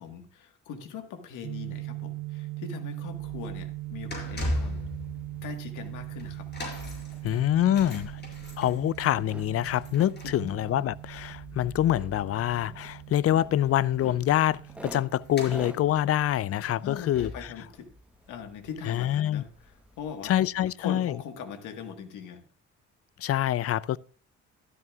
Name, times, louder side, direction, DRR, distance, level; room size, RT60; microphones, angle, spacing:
voice 1, 0.0-4.8 5.4-6.5 10.2-10.5 16.8-17.9 18.3-20.3 20.8-22.4, left 7 dB, 85° left, 1.6 m, -41 dB
sound 1, 1.4-17.1, right 19 dB, 75° right, 0.8 m, -41 dB
sound 2, 3.0-19.4 19.6-19.9 20.7-20.8, left 1 dB, 35° left, 5.1 m, -41 dB
sound 3, 4.2-20.7, right 1 dB, 5° right, 1.0 m, -51 dB
voice 2, 7.2-8.2 8.6-17.3 18.9-19.4 20.2-21.1 23.2-24.0, left 12 dB, 50° left, 0.4 m, -26 dB
12.5 x 12.0 x 2.4 m
cardioid pair, 90°, 30 cm